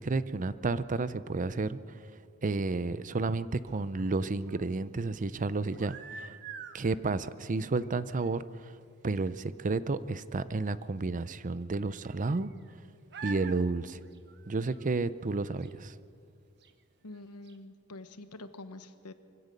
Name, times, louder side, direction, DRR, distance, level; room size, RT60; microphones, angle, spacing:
voice 1, 0.0-2.0 2.4-6.4 6.7-8.8 9.0-12.5 13.2-14.0 14.5-16.0, right 3 dB, 35° right, 15 dB, 0.5 m, -31 dB
sound 1, 3.7-4.7 5.6-6.8 7.8-8.0 8.2-8.3 8.8-8.9 9.2-9.3 11.0-11.1 11.9-12.7 13.1-13.6 14.0-14.9 15.6-15.7 16.6-16.7 17.1-17.2 17.4-17.6, right 5 dB, 50° right, 1.1 m, -46 dB
voice 2, 17.0-19.1, left 2 dB, 90° left, 10 dB, 1.1 m, -46 dB
23.5 x 16.5 x 6.7 m, 2.3 s
head